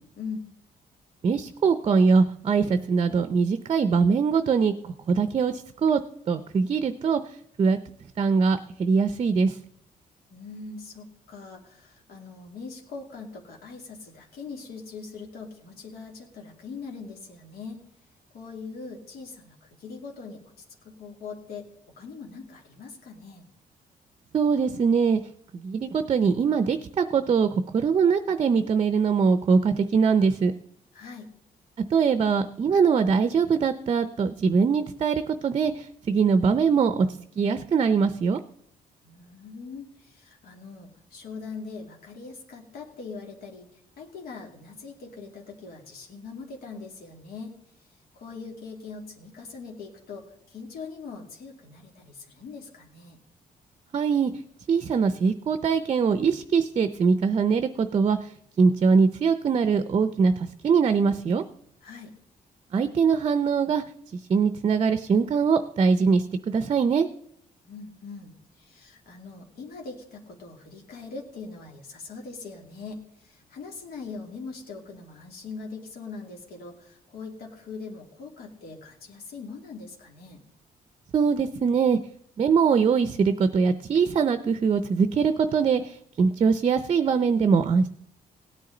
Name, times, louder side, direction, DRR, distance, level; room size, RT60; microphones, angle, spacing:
voice 1, 1.2-6.0 6.3-7.2 7.6-7.8 8.2-9.6 24.3-25.2 25.5-30.5 31.9-37.1 37.4-38.4 53.9-54.3 54.7-58.3 58.6-61.4 62.7-63.8 64.1-67.1 81.1-82.0 82.4-87.9, right 5 dB, 35° right, 11 dB, 0.5 m, -22 dB
voice 2, 10.3-17.8 18.3-20.4 20.8-21.7 22.0-23.4 30.9-31.3 39.0-43.7 44.0-47.6 48.1-53.2 61.8-62.1 67.6-80.4, left 4 dB, 80° left, 0 dB, 2.6 m, -41 dB
17.0 x 9.6 x 3.9 m, 0.71 s
cardioid pair, 150°, 15 cm